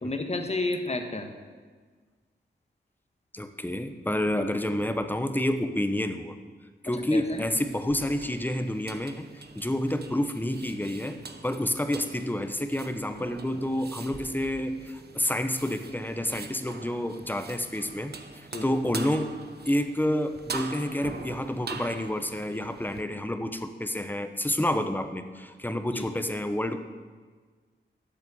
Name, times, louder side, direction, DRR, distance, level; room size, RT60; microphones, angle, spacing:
voice 1, 0.0-1.3 6.9-7.4 18.5-18.7 25.9-26.1, left 2 dB, 35° left, 5 dB, 1.4 m, -31 dB
voice 2, 3.3-6.3 6.8-19.4 19.7-26.8, left 1 dB, 10° left, 8 dB, 1.0 m, -29 dB
sound 1, 7.3-23.0, right 5 dB, 60° right, 0.9 m, -43 dB
12.0 x 7.6 x 7.0 m, 1.5 s
cardioid pair, 65°, 19 cm